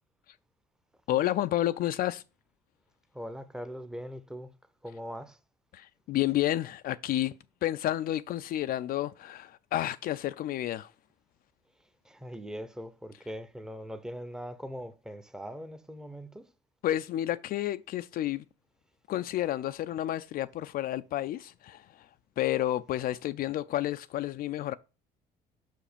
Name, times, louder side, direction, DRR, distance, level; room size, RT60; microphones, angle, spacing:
voice 1, 1.1-2.2 5.7-7.3 7.6-10.9 16.8-18.4 19.1-22.1 22.4-24.7, left 13 dB, 60° left, 0.4 m, -30 dB
voice 2, 3.1-4.5 4.8-5.4 12.0-16.4, equal, 5° right, 0.7 m, -41 dB
5.8 x 5.0 x 5.0 m
cardioid pair, 110°, 17 cm